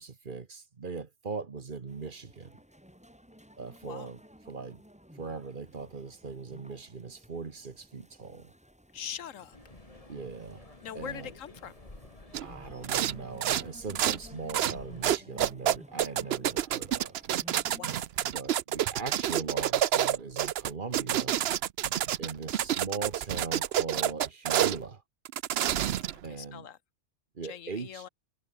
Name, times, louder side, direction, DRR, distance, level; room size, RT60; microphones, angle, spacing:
voice 1, 0.0-2.6 3.6-4.8 5.1-8.5 10.1-10.7 10.9-11.3 12.4-17.2 18.2-21.4 22.2-25.0 26.2-26.7 27.3-28.1, right 4 dB, 40° right, 1.3 m, -40 dB
sound 1, 1.9-18.0, equal, 5° right, 3.6 m, -55 dB
voice 2, 8.9-9.6 10.8-11.7 17.7-18.1 26.3-26.8 27.5-28.1, left 9 dB, 80° left, 1.3 m, -42 dB
sound 2, 9.5-15.1, left 2 dB, 25° left, 2.9 m, -52 dB
sound 3, 12.3-12.5 12.8-13.2 13.4-14.2 14.5-14.8 15.0-24.8 25.3-26.2, right 11 dB, 60° right, 0.8 m, -28 dB
omnidirectional pair, 1.3 m